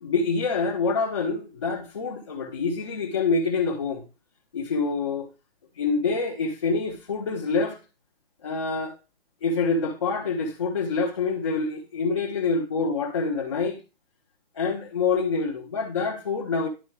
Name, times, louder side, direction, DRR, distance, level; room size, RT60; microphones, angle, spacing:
voice 1, 0.0-4.0 4.5-5.3 5.8-7.8 8.4-9.0 9.4-13.8 14.6-16.7, left 4 dB, 30° left, 0.9 m, -26 dB
11.5 x 4.4 x 3.2 m
hypercardioid pair, 170°, 31 cm